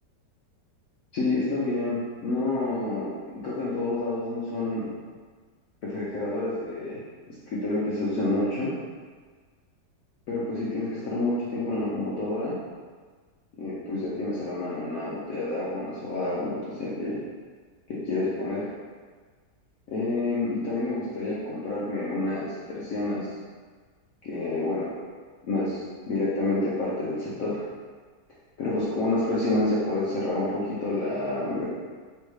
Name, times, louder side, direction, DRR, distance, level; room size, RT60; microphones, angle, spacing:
voice 1, 1.1-3.1 3.4-4.9 5.8-7.0 7.3-8.7 10.3-12.5 13.6-17.2 17.9-18.7 19.9-23.3 24.2-24.9 25.4-27.6 28.6-31.7, left 2 dB, 60° left, -8 dB, 1.0 m, -28 dB
3.3 x 3.2 x 4.7 m, 1.6 s
omnidirectional pair, 1.9 m